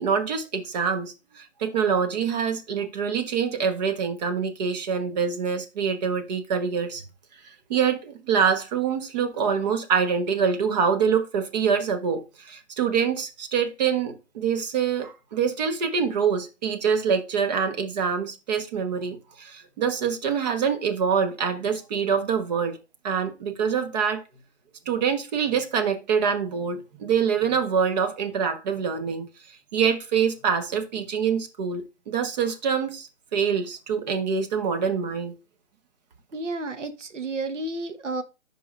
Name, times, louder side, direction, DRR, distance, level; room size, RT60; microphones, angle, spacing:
voice 1, 0.0-7.0 7.4-22.8 23.0-24.2 24.8-29.3 29.7-35.3, right 6 dB, 35° right, 1.3 m, -25 dB
voice 2, 36.3-38.2, right 2 dB, 80° right, 1.4 m, -31 dB
10.5 x 4.9 x 2.6 m
figure-of-eight pair, 140°, 37 cm